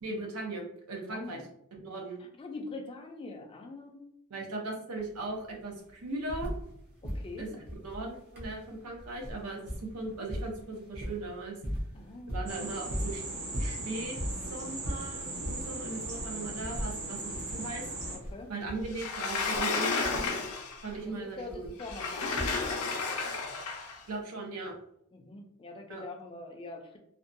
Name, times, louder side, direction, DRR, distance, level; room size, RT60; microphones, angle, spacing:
voice 1, 0.0-1.4 1.7-2.2 4.3-6.5 7.4-11.5 12.3-13.2 13.5-14.2 14.4-17.8 18.5-20.0 20.8-21.6 24.1-24.7 25.9-26.0, right 2 dB, 90° right, 1 dB, 0.6 m, -38 dB
voice 2, 0.9-1.4 2.2-4.1 7.0-7.5 9.4-9.6 11.9-12.4 12.7-12.9 18.1-18.5 20.9-22.9 25.1-27.0, left 3 dB, 25° left, 3 dB, 0.3 m, -44 dB
sound 1, 5.0-5.1 5.3-6.8 7.0-23.0 24.1-24.2, equal, 45° right, 0.7 m, -39 dB
sound 2, 12.5-18.2, right 2 dB, 65° right, 1.3 m, -38 dB
Sliding door, 18.9-20.9 21.8-24.0, left 4 dB, 85° left, 0.5 m, -32 dB
2.5 x 2.2 x 2.5 m, 0.76 s
head